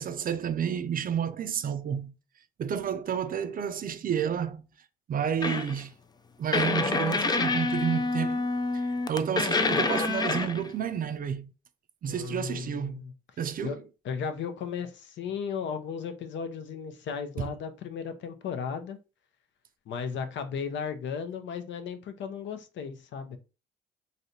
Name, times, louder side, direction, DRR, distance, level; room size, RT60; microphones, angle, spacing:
voice 1, 0.0-2.1 2.6-4.6 5.1-5.9 6.4-8.5 8.7-11.5 12.0-13.0 13.4-13.8 17.4-17.5, right 8 dB, 45° right, 0.5 m, -30 dB
sound 1, 5.4-5.8 6.5-10.7, left 3 dB, 20° left, 0.3 m, -27 dB
voice 2, 12.1-13.1 13.6-13.8 14.0-19.0 19.9-23.4, left 6 dB, 70° left, 0.6 m, -35 dB
3.2 x 2.7 x 2.7 m
cardioid pair, 90°, 20 cm